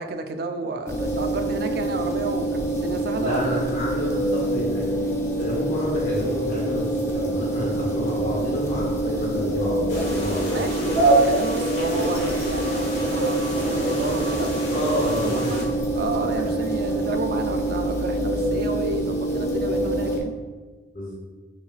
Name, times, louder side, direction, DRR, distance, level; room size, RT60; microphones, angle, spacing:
voice 1, 0.0-3.7 10.5-14.5 14.9-15.7 15.9-20.3, right 3 dB, 55° right, 6 dB, 0.4 m, -31 dB
sound 1, 0.9-20.2, right 1 dB, 15° left, 0.6 m, -26 dB
voice 2, 3.2-4.9 5.4-11.0 14.7-15.5 16.1-16.5 20.9-21.1, left 1 dB, 40° left, -7 dB, 1.2 m, -30 dB
sound 2, 9.9-15.6, right 2 dB, 75° left, 1.3 m, -25 dB
5.3 x 3.2 x 2.4 m, 1.3 s
head